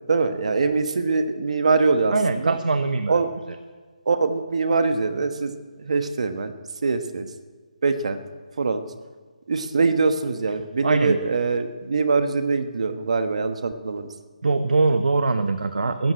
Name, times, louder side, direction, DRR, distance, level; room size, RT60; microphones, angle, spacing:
voice 1, 0.1-2.6 3.1-3.3 4.1-6.5 6.8-7.3 7.8-8.2 8.6-8.8 9.5-14.1, right 4 dB, 55° right, 9 dB, 1.3 m, -23 dB
voice 2, 2.1-3.2 10.8-11.2 14.4-16.1, right 3 dB, 80° right, 9 dB, 1.0 m, -22 dB
14.0 x 9.6 x 8.9 m, 1.5 s
hypercardioid pair, 175°, 4 cm